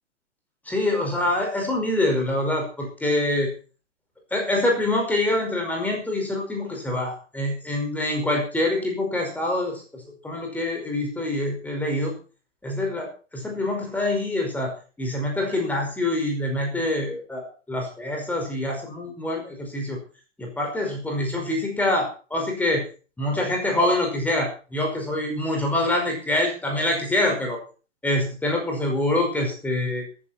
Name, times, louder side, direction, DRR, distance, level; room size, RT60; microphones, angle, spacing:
voice 1, 0.7-3.5 4.3-9.8 10.2-12.1 12.6-20.0 20.4-22.8 23.2-27.6 28.0-30.0, left 1 dB, 5° left, 1 dB, 5.4 m, -25 dB
15.0 x 14.5 x 4.5 m, 0.37 s
figure-of-eight pair, 120°, 37 cm